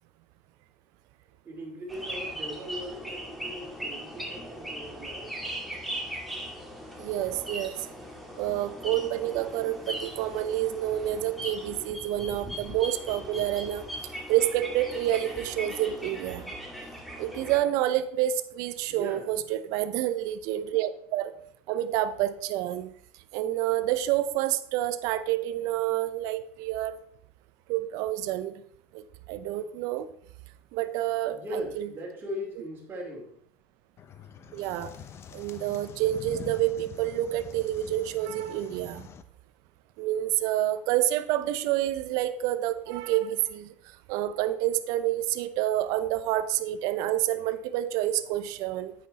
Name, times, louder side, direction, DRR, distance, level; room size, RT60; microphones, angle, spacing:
voice 1, 1.4-5.3 18.9-19.4 31.3-33.4, equal, 30° right, -3 dB, 2.6 m, -39 dB
sound 1, 1.9-17.6, equal, ahead, 2.1 m, -39 dB
voice 2, 7.0-7.9 8.4-13.8 14.3-16.5 17.2-21.3 21.7-22.9 23.3-27.0 27.7-28.5 28.9-29.0 29.3-30.1 30.7-31.4 31.8-31.9 34.5-34.9 35.3-39.1 40.0-43.7 44.1-48.9, right 13 dB, 65° right, 13 dB, 0.6 m, -28 dB
sound 2, 34.0-39.2, left 8 dB, 40° left, 0.7 m, -45 dB
8.4 x 6.0 x 4.1 m, 0.66 s
supercardioid pair, 90°, 7 cm